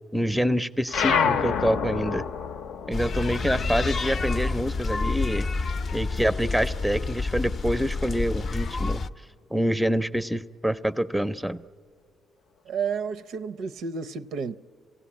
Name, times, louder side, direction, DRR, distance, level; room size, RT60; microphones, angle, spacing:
voice 1, 0.1-2.3 2.9-5.5 5.9-9.0 9.5-11.6, equal, ahead, 0.5 m, -26 dB
sound 1, 0.9-5.8 6.1-7.5, left 6 dB, 90° left, 0.6 m, -29 dB
sound 2, 2.9-9.1, left 3 dB, 45° left, 0.5 m, -28 dB
voice 2, 12.7-14.5, right 6 dB, 80° right, 0.5 m, -31 dB
28.0 x 16.5 x 8.6 m
cardioid pair, 90°, 0 cm